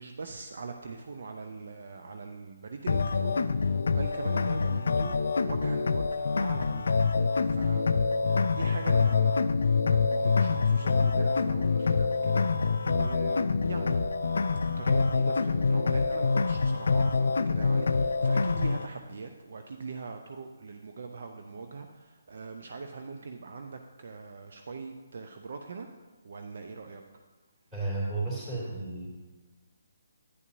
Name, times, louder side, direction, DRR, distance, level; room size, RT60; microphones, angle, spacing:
voice 1, 0.0-7.0 7.4-8.1 8.5-9.4 9.7-14.0 14.8-25.9 26.2-27.0, right 4 dB, 50° right, 4 dB, 0.5 m, -42 dB
sound 1, 2.9-18.9, left 4 dB, 55° left, 0.3 m, -26 dB
voice 2, 27.7-29.1, right 2 dB, 10° right, -6 dB, 2.8 m, -32 dB
10.5 x 9.4 x 2.7 m, 1.3 s
figure-of-eight pair, 140°, 0 cm